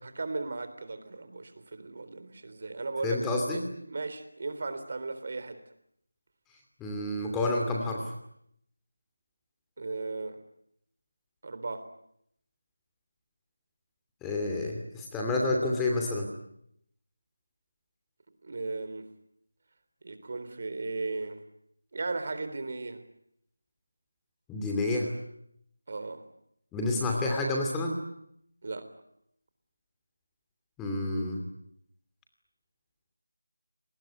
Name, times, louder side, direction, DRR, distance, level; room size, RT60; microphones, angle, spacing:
voice 1, 0.0-5.6 9.8-10.4 11.4-11.9 18.4-19.1 20.0-21.4 21.9-23.0 25.9-26.2 28.6-28.9, right 3 dB, 45° right, 10 dB, 3.6 m, -36 dB
voice 2, 3.0-3.6 6.8-8.1 14.2-16.3 24.5-25.1 26.7-27.9 30.8-31.4, left 2 dB, 5° left, 0 dB, 2.7 m, -29 dB
27.5 x 20.0 x 9.5 m, 0.74 s
figure-of-eight pair, 165°, 0 cm